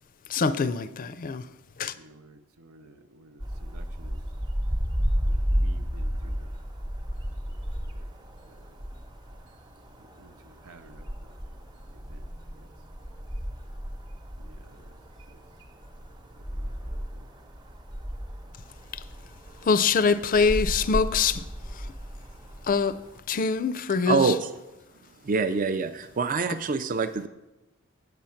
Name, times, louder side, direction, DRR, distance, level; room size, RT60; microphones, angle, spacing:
voice 1, 0.3-1.4 1.8-1.9 19.7-21.4 22.7-22.9 23.3-24.3, left 5 dB, 40° left, 0.4 m, -24 dB
voice 2, 2.0-4.2 5.3-6.5 10.2-10.3 10.6-11.0 12.1-12.2 14.5-14.8 16.5-17.0, right 2 dB, 80° right, 0.6 m, -52 dB
sound 1, 3.4-23.2, equal, 20° right, 0.9 m, -33 dB
voice 3, 24.1-24.5 25.2-27.3, right 4 dB, 40° right, 0.4 m, -25 dB
8.2 x 7.6 x 5.7 m
head